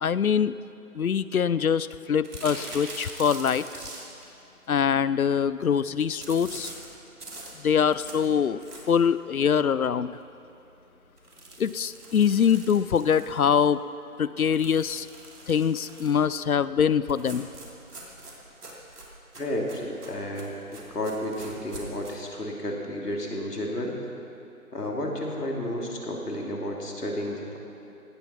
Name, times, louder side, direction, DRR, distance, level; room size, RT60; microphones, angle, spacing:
voice 1, 0.0-0.5 1.0-3.6 4.7-6.7 7.6-8.6 8.9-10.1 11.6-13.8 14.2-15.1 15.5-17.5, left 7 dB, 65° left, 16 dB, 0.5 m, -23 dB
sound 1, 2.2-4.3 6.2-9.1 9.6-9.7 10.0-10.1 10.4-10.5 11.2-13.7 14.5-16.3 17.1-22.1, right 2 dB, 80° right, 3.4 m, -43 dB
voice 2, 19.3-24.0 24.7-27.6, left 1 dB, 85° left, -1 dB, 2.9 m, -32 dB
18.0 x 13.0 x 4.3 m, 2.8 s
figure-of-eight pair, 180°, 46 cm